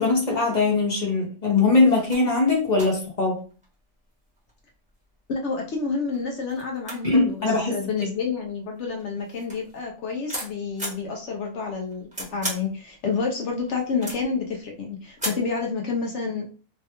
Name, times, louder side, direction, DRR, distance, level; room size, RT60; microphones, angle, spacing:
voice 1, 0.0-3.4 7.0-7.8, left 3 dB, 35° left, -1 dB, 0.8 m, -21 dB
sound 1, 1.8-1.9 2.1-2.3 2.8-3.7 4.4-5.0 5.7-5.8 6.1-6.2 6.5-8.5 9.0-11.0 11.7-12.7 13.1-14.4 15.2-15.6, right 1 dB, 5° right, 0.9 m, -36 dB
voice 2, 5.3-16.6, left 5 dB, 65° left, 1 dB, 0.8 m, -29 dB
3.2 x 2.3 x 2.8 m, 0.37 s
omnidirectional pair, 1.5 m